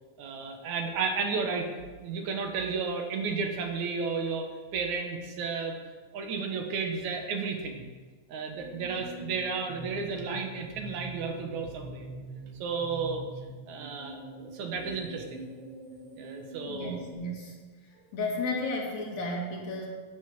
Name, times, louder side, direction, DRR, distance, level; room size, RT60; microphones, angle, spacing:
voice 1, 0.2-1.7 2.0-4.5 4.7-5.8 6.1-7.8 8.3-12.1 12.6-13.2 13.7-15.4 16.2-17.0, right 5 dB, 80° right, 4 dB, 2.6 m, -33 dB
sound 1, 8.5-17.1, right 1 dB, 55° right, 2.8 m, -44 dB
voice 2, 16.7-17.5 18.1-19.9, left 2 dB, 65° left, -1 dB, 3.2 m, -33 dB
10.5 x 6.6 x 7.6 m, 1.4 s
omnidirectional pair, 3.3 m